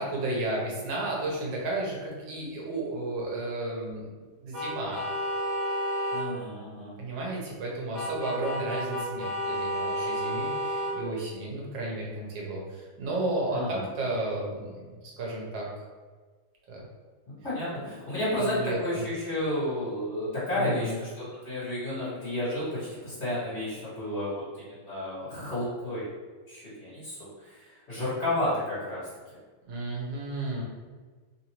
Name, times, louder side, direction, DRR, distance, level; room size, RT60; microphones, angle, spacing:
voice 1, 0.0-5.0 7.0-15.7 16.7-16.8 18.4-19.0 20.5-20.9 29.7-30.6, right 2 dB, 70° right, -3 dB, 1.5 m, -33 dB
sound 1, 4.5-6.3 7.9-11.0, equal, 50° right, 0.9 m, -31 dB
voice 2, 6.1-7.0 13.5-13.9 17.3-26.1 26.5-29.1, left 1 dB, 40° left, -12 dB, 1.9 m, -32 dB
3.5 x 2.6 x 2.9 m, 1.4 s
omnidirectional pair, 2.0 m